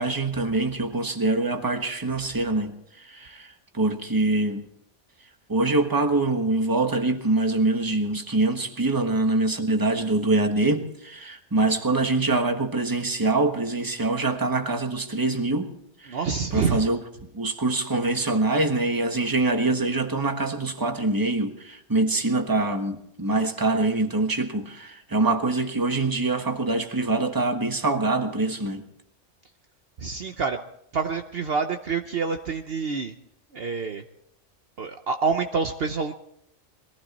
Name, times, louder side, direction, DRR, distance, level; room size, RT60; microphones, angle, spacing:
voice 1, 0.0-4.7 5.5-15.7 16.0-16.2 16.5-17.0 17.3-28.8, right 2 dB, 15° right, 1.3 m, -24 dB
voice 2, 16.1-16.9 30.0-30.6 30.9-33.1 33.5-34.0 34.8-36.1, right 5 dB, 55° right, 1.0 m, -27 dB
22.0 x 15.5 x 4.2 m
omnidirectional pair, 1.3 m